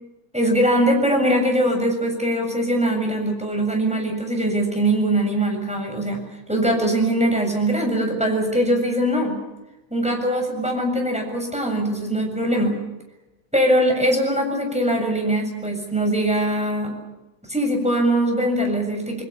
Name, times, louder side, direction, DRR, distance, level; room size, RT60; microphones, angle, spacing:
voice 1, 0.3-9.4 9.9-12.8 13.5-17.0 17.5-19.2, right 1 dB, ahead, 2 dB, 6.8 m, -22 dB
29.5 x 21.0 x 7.1 m, 1.0 s
omnidirectional pair, 5.7 m